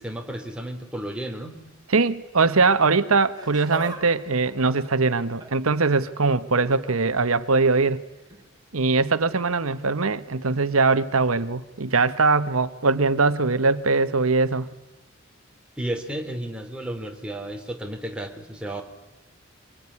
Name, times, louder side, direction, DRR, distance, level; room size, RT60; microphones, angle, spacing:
voice 1, 0.0-1.6 15.8-18.8, right 1 dB, 5° right, 3 dB, 3.2 m, -32 dB
voice 2, 1.9-8.0 8.7-14.7, right 4 dB, 90° right, 13 dB, 1.2 m, -21 dB
Laughter, 3.2-4.0 4.3-5.7 6.6-6.9 8.3-8.4 9.3-9.4, right 3 dB, 20° right, 4.5 m, -40 dB
25.0 x 22.5 x 9.8 m, 1.0 s
head